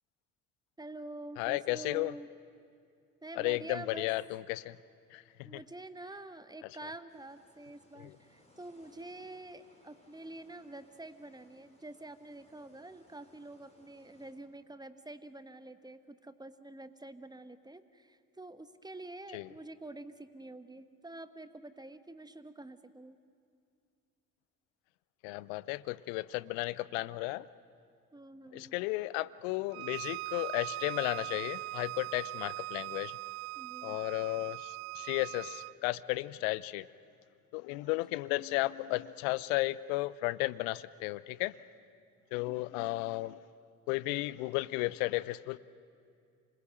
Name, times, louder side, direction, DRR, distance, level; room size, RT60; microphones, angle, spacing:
voice 1, 0.8-2.3 3.2-4.1 5.4-23.2 28.1-28.7 33.5-34.0 37.8-38.0 42.5-42.9, right 2 dB, 10° right, 11 dB, 1.2 m, -47 dB
voice 2, 1.4-2.1 3.4-4.8 5.1-5.6 8.0-8.1 19.3-19.5 25.2-27.5 28.5-33.2 33.8-36.9 37.5-41.6 42.3-43.4 43.9-45.6, left 19 dB, 65° left, 19 dB, 0.7 m, -34 dB
sound 1, 7.1-14.3, left 1 dB, 15° left, 5.9 m, -65 dB
Bowed string instrument, 29.7-35.8, right 20 dB, 70° right, 0.5 m, -41 dB
26.5 x 20.5 x 7.8 m, 2.4 s
figure-of-eight pair, 50°, 44 cm